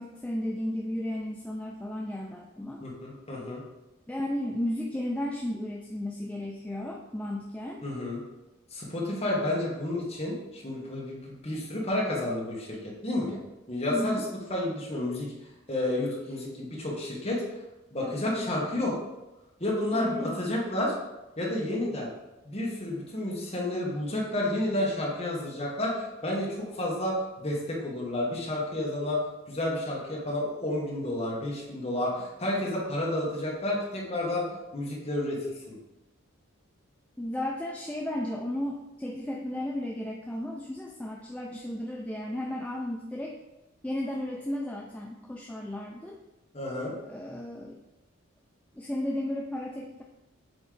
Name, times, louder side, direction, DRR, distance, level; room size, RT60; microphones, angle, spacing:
voice 1, 0.0-2.8 4.1-7.8 13.9-14.3 18.0-18.5 19.9-20.4 37.2-43.4 43.8-46.2 47.0-47.8 48.7-50.0, left 1 dB, 5° left, -1 dB, 0.3 m, -34 dB
voice 2, 2.8-3.6 7.8-8.2 8.7-13.4 13.7-14.2 14.5-15.3 15.7-17.4 17.9-18.9 19.6-20.9 21.4-22.1 22.4-29.2 29.5-35.4 35.7-35.8 46.5-46.9, left 1 dB, 30° left, -4 dB, 1.4 m, -30 dB
7.9 x 3.1 x 3.9 m, 1.0 s
head